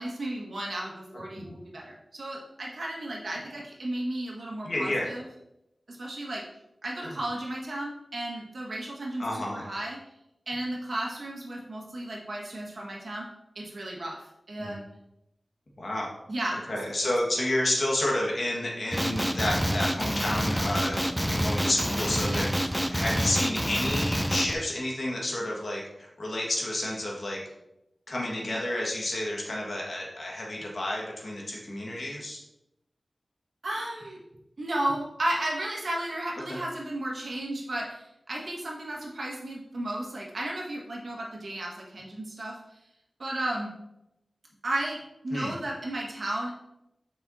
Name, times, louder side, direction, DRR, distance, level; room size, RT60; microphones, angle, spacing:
voice 1, 0.0-5.2 5.9-6.5 6.8-10.0 10.5-13.3 13.6-14.8 16.3-16.7 22.3-22.5 28.5-28.6 33.6-34.2 34.6-42.6 43.2-43.8 44.6-45.0 45.2-46.5, right 1 dB, 70° right, -3 dB, 1.7 m, -34 dB
voice 2, 4.6-5.1 7.0-7.2 9.2-9.6 14.6-14.7 15.8-16.1 16.6-21.0 21.3-22.5 22.9-27.4 28.1-32.4 36.5-36.6 45.3-45.5, left 1 dB, 65° left, -2 dB, 1.7 m, -30 dB
Male speech man speaking, 18.9-24.5, equal, 5° right, 0.5 m, -27 dB
7.0 x 5.5 x 2.8 m, 0.87 s
wide cardioid pair, 80°, 0 cm